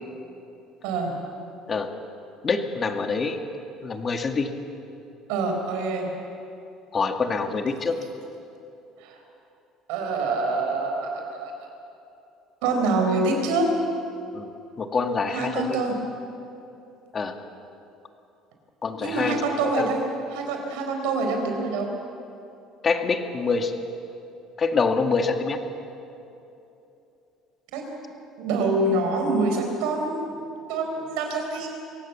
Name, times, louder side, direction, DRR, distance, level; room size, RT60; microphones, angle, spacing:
voice 1, 0.8-1.1 5.3-6.1 9.0-9.1 9.9-11.7 12.6-13.7 15.3-16.0 19.0-20.0 20.3-21.9 27.7-27.9 28.4-30.4 30.7-31.7, right 3 dB, 85° right, 3 dB, 4.6 m, -25 dB
voice 2, 2.4-3.4 3.8-4.5 6.9-8.0 14.3-14.5 14.8-15.8 17.1-17.3 18.8-19.9 22.8-23.7 24.6-25.6, left 4 dB, 35° left, 5 dB, 2.0 m, -25 dB
24.5 x 17.5 x 7.3 m, 2.8 s
supercardioid pair, 105°, 0 cm